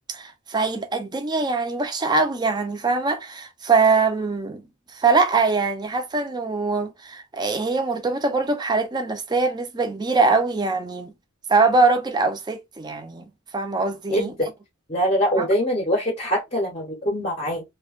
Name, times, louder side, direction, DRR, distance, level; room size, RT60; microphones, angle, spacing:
voice 1, 0.1-4.6 4.9-11.1 11.5-13.2 13.5-14.3 15.4-15.5, right 3 dB, 20° right, 0.4 m, -22 dB
voice 2, 14.1-14.5 14.9-17.6, equal, 30° left, 0.6 m, -23 dB
2.6 x 2.1 x 2.3 m
head